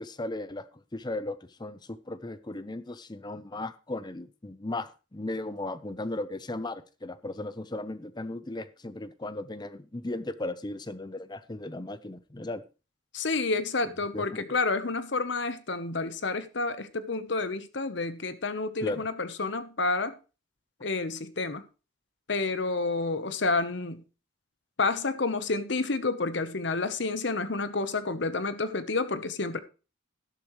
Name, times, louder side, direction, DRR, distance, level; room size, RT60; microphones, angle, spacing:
voice 1, 0.0-12.6 14.1-14.6 18.8-19.1, left 2 dB, 20° left, 0.7 m, -36 dB
voice 2, 13.1-20.1 20.8-21.6 22.3-24.0 24.8-29.6, left 3 dB, 60° left, 0.9 m, -29 dB
12.0 x 11.5 x 3.1 m
head